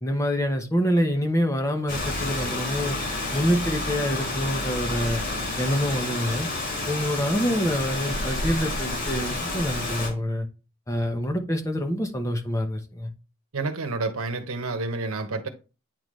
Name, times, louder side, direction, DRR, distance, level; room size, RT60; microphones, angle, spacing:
voice 1, 0.0-3.0 3.3-5.2 5.6-6.5 6.9-10.5 10.9-13.1, equal, 15° left, 0.9 m, -26 dB
Rain, 1.9-10.1, left 2 dB, 55° left, 3.8 m, -29 dB
voice 2, 13.5-15.5, right 3 dB, 85° right, 1.0 m, -29 dB
9.0 x 3.9 x 3.1 m
head